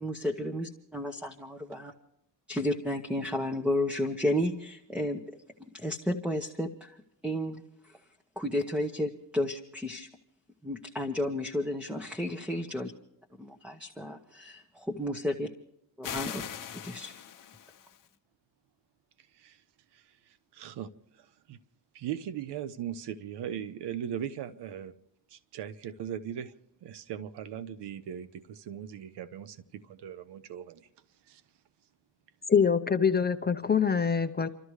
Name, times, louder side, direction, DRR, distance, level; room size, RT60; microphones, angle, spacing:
voice 1, 0.0-1.9 2.5-5.2 5.7-7.0 7.2-7.6 8.4-10.1 10.6-12.9 13.4-14.6 14.9-15.5 16.0-16.4 16.8-17.1, left 1 dB, 5° right, 1.1 m, -32 dB
sound 1, 16.0-18.1, left 9 dB, 50° left, 1.0 m, -40 dB
voice 2, 19.9-21.6 21.9-24.9 25.3-26.5 26.8-30.9 31.2-31.4, right 9 dB, 80° right, 0.9 m, -39 dB
voice 3, 32.5-34.5, left 6 dB, 25° left, 0.8 m, -24 dB
30.0 x 13.0 x 3.2 m
cardioid pair, 105°, 41 cm